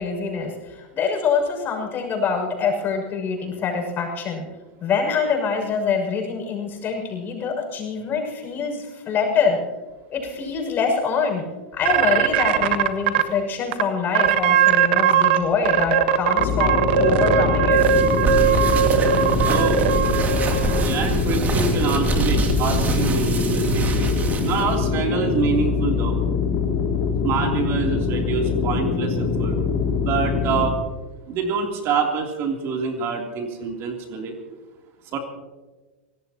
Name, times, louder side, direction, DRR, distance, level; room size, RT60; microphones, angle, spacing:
voice 1, 0.0-4.4 4.8-9.6 10.1-11.5 11.7-17.8, left 5 dB, 35° left, 2 dB, 6.4 m, -25 dB
sound 1, 11.9-13.2 13.7-13.8 14.1-15.4 15.7-20.9, right 9 dB, 65° right, 1.4 m, -19 dB
sound 2, 16.4-30.7, left 5 dB, 50° left, 2.7 m, -23 dB
sound 3, 17.7-24.8, right 3 dB, 25° right, 2.9 m, -26 dB
voice 2, 19.4-19.9 20.8-26.2 27.2-29.6 30.0-30.8 31.3-34.3 35.1-35.2, right 5 dB, 45° right, 1 dB, 3.2 m, -26 dB
25.0 x 18.0 x 3.0 m, 1.2 s
hypercardioid pair, 100°, 6 cm